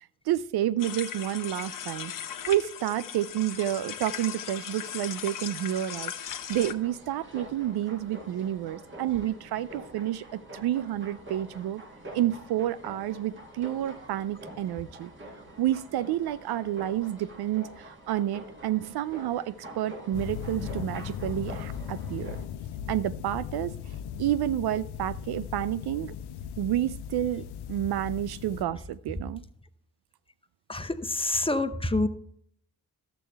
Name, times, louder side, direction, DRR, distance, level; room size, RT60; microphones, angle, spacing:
voice 1, 0.3-2.1 2.5-11.8 12.1-15.1 15.6-22.4 22.9-23.7 24.2-26.1 26.6-29.4, right 12 dB, 75° right, 17 dB, 0.5 m, -30 dB
sound 1, 0.8-6.7, left 9 dB, 55° left, 0.9 m, -38 dB
sound 2, 6.6-22.5, right 1 dB, 30° right, 1.6 m, -46 dB
sound 3, 20.1-28.6, left 9 dB, 85° left, 0.5 m, -38 dB
voice 2, 30.7-32.1, left 2 dB, 15° left, 10 dB, 0.7 m, -27 dB
12.0 x 7.6 x 3.4 m, 0.67 s
supercardioid pair, 55°, 38 cm